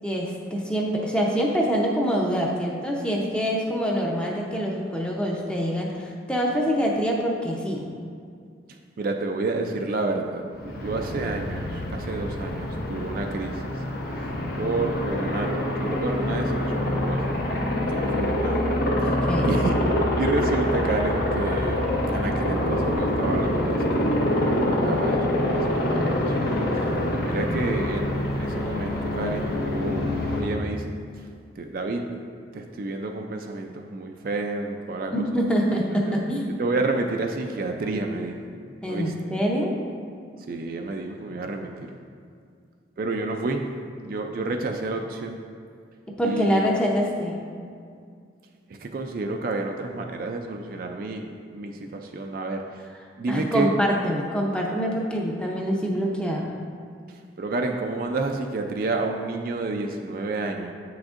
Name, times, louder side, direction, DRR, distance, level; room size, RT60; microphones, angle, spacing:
voice 1, 0.0-7.9 19.0-19.5 35.1-36.5 38.8-39.8 46.2-47.4 53.3-56.5, equal, 5° left, -2 dB, 0.6 m, -25 dB
voice 2, 8.7-13.6 14.2-14.3 14.6-18.6 19.0-19.2 19.4-26.4 27.1-30.1 30.4-31.3 31.6-32.1 32.5-35.2 36.1-36.2 36.6-38.4 38.9-39.1 40.5-41.9 43.0-43.7 44.0-45.4 46.2-46.7 48.7-52.8 53.2-53.7 57.1-60.7, right 2 dB, 50° right, 3 dB, 0.4 m, -30 dB
Aircraft, 10.5-30.4, left 1 dB, 55° left, 0.8 m, -25 dB
7.7 x 6.1 x 2.5 m, 2.2 s
head